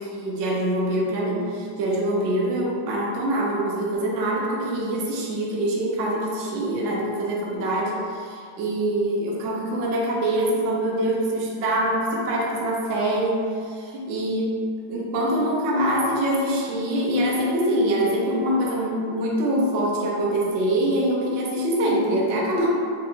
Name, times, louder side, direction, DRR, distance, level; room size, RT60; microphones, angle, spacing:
voice 1, 0.1-14.5 14.9-22.7, right 1 dB, 70° right, -3 dB, 0.7 m, -24 dB
4.5 x 2.2 x 2.5 m, 2.3 s
omnidirectional pair, 1.9 m